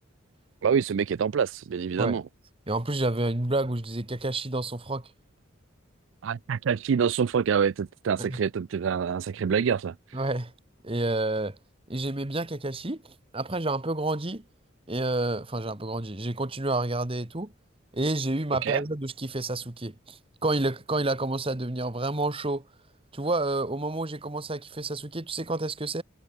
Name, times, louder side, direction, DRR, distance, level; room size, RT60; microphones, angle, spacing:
voice 1, 0.6-2.2 6.2-9.9 18.6-18.8, right 7 dB, 70° right, 0.4 m, -26 dB
voice 2, 2.7-5.1 8.2-8.4 10.1-10.5 10.8-11.6 11.9-13.0 13.3-14.4 14.9-17.5 17.9-22.6 23.1-26.0, right 2 dB, 30° right, 1.6 m, -29 dB
head